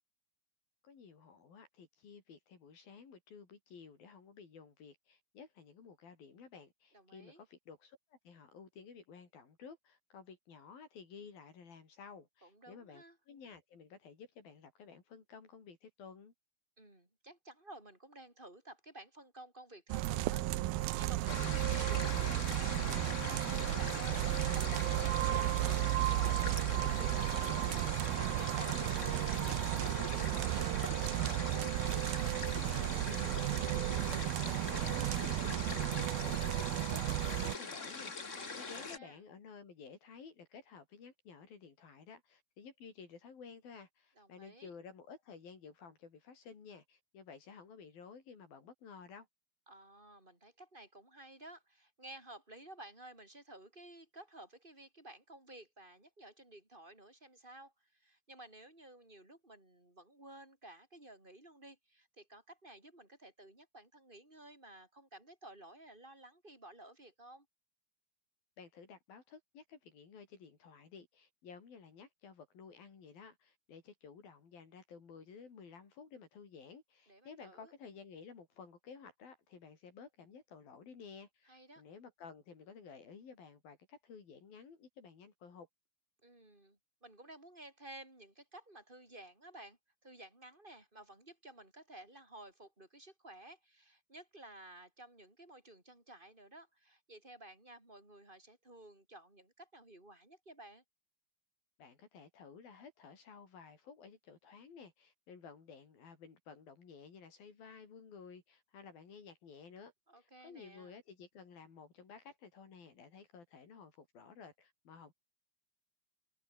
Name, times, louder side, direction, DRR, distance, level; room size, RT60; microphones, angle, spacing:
voice 1, 0.8-16.3 32.6-49.3 68.6-85.7 101.8-115.1, left 5 dB, 60° left, 5.8 m, -54 dB
voice 2, 6.9-7.4 12.4-13.2 16.8-31.5 38.3-39.2 44.2-44.7 49.7-67.5 77.1-77.7 81.4-81.8 86.2-100.8 110.1-110.9, right 1 dB, 10° right, 4.9 m, -54 dB
sound 1, 19.9-37.6, right 17 dB, 75° right, 2.5 m, -34 dB
sound 2, 21.3-39.0, left 4 dB, 25° left, 1.9 m, -42 dB
open air
omnidirectional pair, 4.8 m